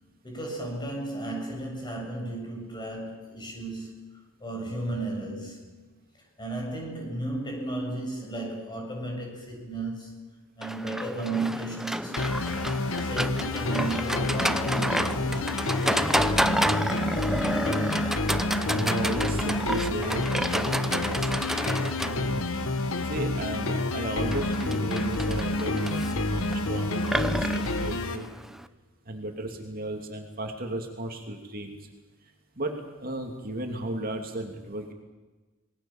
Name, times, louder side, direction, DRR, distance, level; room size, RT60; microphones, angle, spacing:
voice 1, 0.2-5.7 6.4-10.2 10.6-12.5 13.0-15.6, right 2 dB, 20° left, 1 dB, 7.3 m, -34 dB
Livestock farm animals working animals, 10.6-28.6, equal, ahead, 0.7 m, -30 dB
sound 1, 12.2-28.2, left 2 dB, 85° left, 1.6 m, -29 dB
voice 2, 18.7-21.3 22.1-22.7 23.0-28.3 29.1-31.8 32.6-32.7 33.0-34.9, right 1 dB, 45° right, 3 dB, 2.8 m, -34 dB
27.0 x 20.0 x 7.3 m, 1.3 s
head